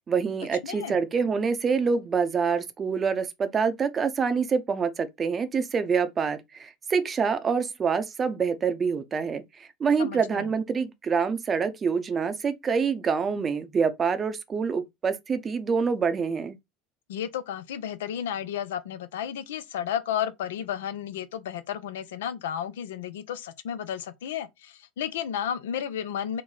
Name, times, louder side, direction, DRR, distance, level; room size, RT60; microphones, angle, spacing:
voice 1, 0.1-16.6, right 5 dB, 30° right, 0.6 m, -26 dB
voice 2, 0.6-1.0 10.0-10.5 17.1-26.4, left 9 dB, 80° left, 0.4 m, -32 dB
3.3 x 2.0 x 3.8 m
hypercardioid pair, 80°, 0 cm